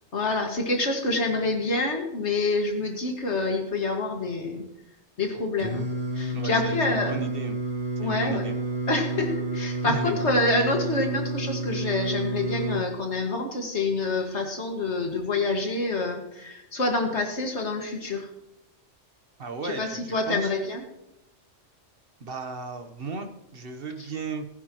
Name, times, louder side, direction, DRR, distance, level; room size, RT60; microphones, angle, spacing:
voice 1, 0.1-4.6 5.2-5.8 6.2-7.2 8.0-8.4 8.9-18.3 19.6-20.8, left 2 dB, 65° left, 3 dB, 2.3 m, -27 dB
Singing, 5.6-12.8, right 2 dB, 30° right, 2.4 m, -30 dB
voice 2, 6.3-7.6 8.0-8.6 9.8-10.2 19.4-20.5 22.2-24.5, right 3 dB, 50° right, 7 dB, 1.3 m, -35 dB
19.5 x 10.5 x 3.1 m, 0.91 s
omnidirectional pair, 1.3 m